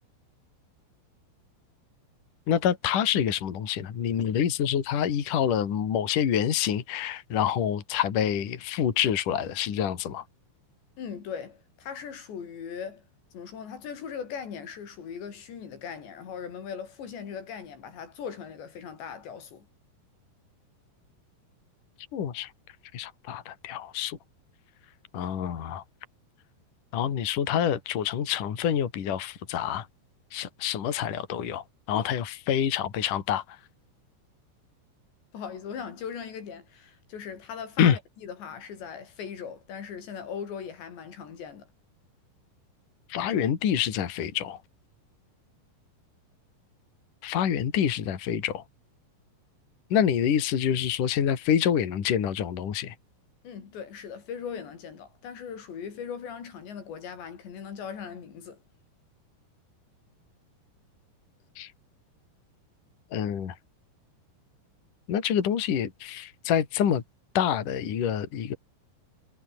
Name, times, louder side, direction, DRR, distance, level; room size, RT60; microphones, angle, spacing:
voice 1, 2.5-10.2 22.1-22.5 22.9-24.2 25.1-25.8 26.9-29.9 30.3-33.4 37.8-38.0 43.1-44.6 47.2-48.6 49.9-52.9 61.6-61.7 63.1-63.5 65.1-67.0 67.4-68.6, left 9 dB, 50° left, 3.8 m, -27 dB
voice 2, 11.0-13.0 13.3-19.7 35.3-41.7 53.4-58.6, left 7 dB, 80° left, 6.3 m, -39 dB
omnidirectional pair, 5.0 m